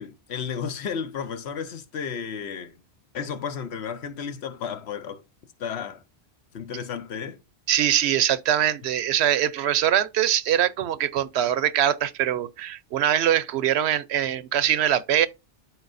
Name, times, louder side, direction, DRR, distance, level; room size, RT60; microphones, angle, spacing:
voice 1, 0.0-2.8 3.1-5.2 5.6-6.0 6.5-7.4, left 7 dB, 80° left, 1.1 m, -33 dB
voice 2, 7.7-15.3, right 10 dB, 80° right, 0.9 m, -23 dB
12.5 x 4.5 x 2.5 m
omnidirectional pair, 1.1 m